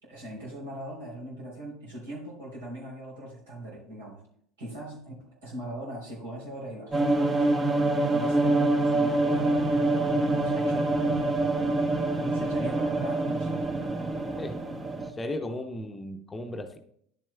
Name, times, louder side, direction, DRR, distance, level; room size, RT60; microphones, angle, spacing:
voice 1, 0.0-4.2 4.6-7.6 8.1-9.7 10.0-10.9 12.2-14.2, right 1 dB, 70° right, -3 dB, 3.6 m, -40 dB
sound 1, 6.9-15.1, right 2 dB, 25° right, 0.9 m, -25 dB
voice 2, 15.0-16.8, left 1 dB, 20° left, 6 dB, 0.7 m, -35 dB
10.5 x 7.4 x 2.2 m, 0.66 s
figure-of-eight pair, 70°, 0 cm